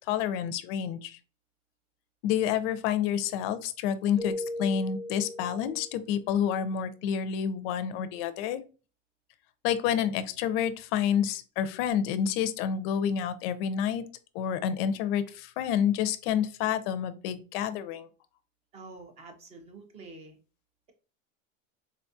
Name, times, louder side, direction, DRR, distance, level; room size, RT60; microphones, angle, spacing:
voice 1, 0.1-1.2 2.2-8.6 9.6-14.0 14.3-18.1, left 8 dB, 45° left, 12 dB, 0.4 m, -29 dB
Keyboard (musical), 4.2-6.2, left 1 dB, ahead, 0.9 m, -37 dB
voice 2, 18.7-20.4, right 3 dB, 15° right, 5 dB, 0.3 m, -47 dB
4.1 x 2.3 x 2.6 m, 0.34 s
supercardioid pair, 145°, 41 cm